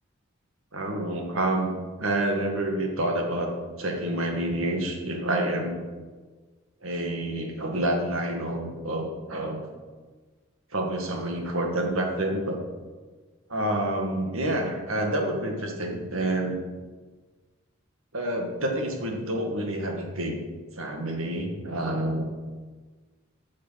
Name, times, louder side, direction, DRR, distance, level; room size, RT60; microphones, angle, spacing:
voice 1, 0.7-1.7 2.0-3.5 3.8-5.8 6.8-9.6 10.7-12.6 13.5-16.6 18.1-20.4 20.8-22.2, right 1 dB, 80° right, 2 dB, 2.1 m, -28 dB
12.0 x 6.5 x 5.9 m, 1.4 s
head